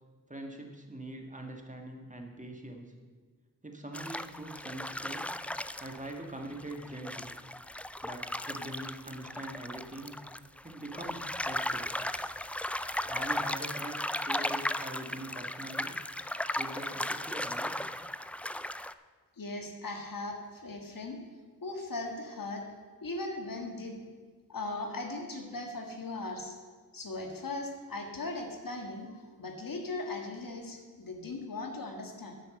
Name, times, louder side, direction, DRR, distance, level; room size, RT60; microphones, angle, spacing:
voice 1, 0.3-2.9 3.6-5.3 5.8-7.3 8.0-10.2 10.6-11.9 13.1-16.0 16.6-17.8, right 1 dB, 20° right, 2 dB, 1.7 m, -43 dB
sound 1, 3.9-18.9, left 1 dB, 5° left, 0.3 m, -36 dB
voice 2, 19.4-21.2 21.6-22.6 23.0-24.0 24.5-26.6 26.9-32.4, left 2 dB, 65° left, 3 dB, 1.7 m, -38 dB
9.7 x 5.8 x 7.7 m, 1.4 s
cardioid pair, 45°, 36 cm